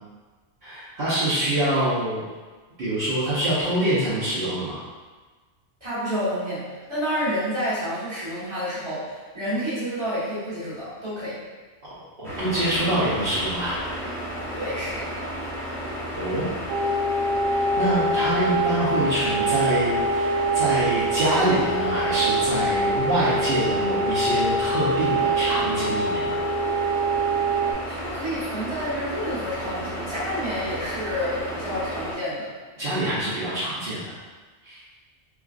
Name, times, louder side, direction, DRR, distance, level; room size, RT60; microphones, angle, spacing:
voice 1, 0.6-2.2 2.8-4.8 11.8-13.8 16.1-16.5 17.8-26.4 32.8-34.1 34.6-34.8, right 1 dB, 55° right, -12 dB, 1.1 m, -25 dB
voice 2, 5.8-6.6 6.9-11.4 14.5-15.1 27.9-32.5, equal, 25° right, -11 dB, 1.5 m, -29 dB
sound 1, 12.2-32.1, equal, 5° left, 0.5 m, -33 dB
sound 2, 16.7-27.7, right 2 dB, 85° right, 0.9 m, -25 dB
4.6 x 2.4 x 2.4 m, 1.3 s
omnidirectional pair, 1.2 m